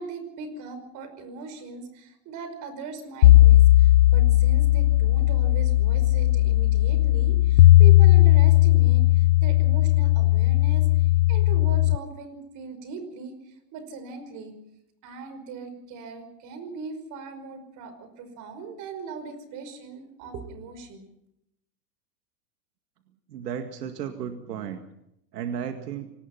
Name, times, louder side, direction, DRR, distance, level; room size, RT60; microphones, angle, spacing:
voice 1, 0.0-14.5 15.0-21.1, right 4 dB, 40° right, 10 dB, 5.4 m, -39 dB
sound 1, 3.2-12.0, left 15 dB, 80° left, 0.8 m, -17 dB
voice 2, 23.3-24.8 25.3-26.1, right 8 dB, 80° right, 6 dB, 2.1 m, -34 dB
27.0 x 19.0 x 5.9 m, 0.79 s
hypercardioid pair, 130°, 47 cm